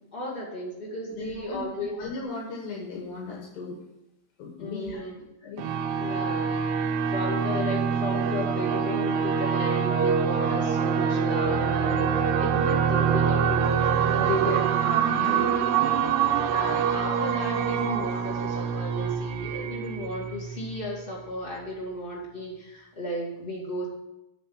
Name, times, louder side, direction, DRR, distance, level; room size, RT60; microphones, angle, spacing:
voice 1, 0.0-1.9 4.6-5.2 5.9-14.7 16.5-23.9, equal, 20° left, -4 dB, 1.5 m, -34 dB
voice 2, 1.1-3.8 4.4-5.0 5.4-5.7 6.8-6.9 11.0-11.1 14.2-15.6, left 3 dB, 80° left, -2 dB, 3.5 m, -37 dB
sound 1, 5.6-20.9, right 7 dB, 90° right, 2.9 m, -25 dB
8.9 x 5.0 x 7.1 m, 0.90 s
omnidirectional pair, 4.8 m